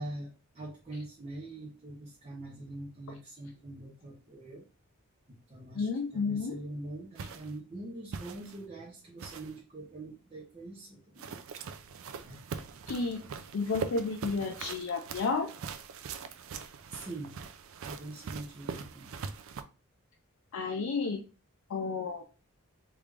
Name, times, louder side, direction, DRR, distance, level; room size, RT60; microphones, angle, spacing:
voice 1, 0.0-4.7 5.3-11.3 12.2-12.7 16.9-17.3 17.8-19.1, right 2 dB, 30° right, -4 dB, 0.7 m, -43 dB
voice 2, 5.8-6.6 12.9-13.2 13.5-15.5 20.5-21.2 21.7-22.2, left 4 dB, 65° left, 4 dB, 0.4 m, -31 dB
sound 1, 7.2-7.5 8.1-8.6 9.2-9.6 11.2-19.6, right 5 dB, 65° right, 0.4 m, -42 dB
3.5 x 2.4 x 3.3 m, 0.33 s
head